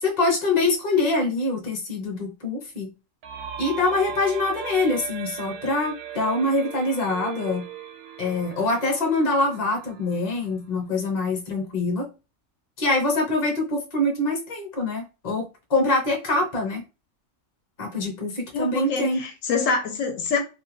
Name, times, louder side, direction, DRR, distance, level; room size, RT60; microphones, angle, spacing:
voice 1, 0.0-2.9 3.6-7.6 8.2-12.1 12.8-16.8 17.8-19.2, left 2 dB, 35° left, 0.8 m, -24 dB
sound 1, 3.2-10.8, right 10 dB, 60° right, 0.8 m, -38 dB
voice 2, 18.5-20.4, left 4 dB, 75° left, 0.9 m, -25 dB
2.5 x 2.2 x 3.1 m
omnidirectional pair, 1.4 m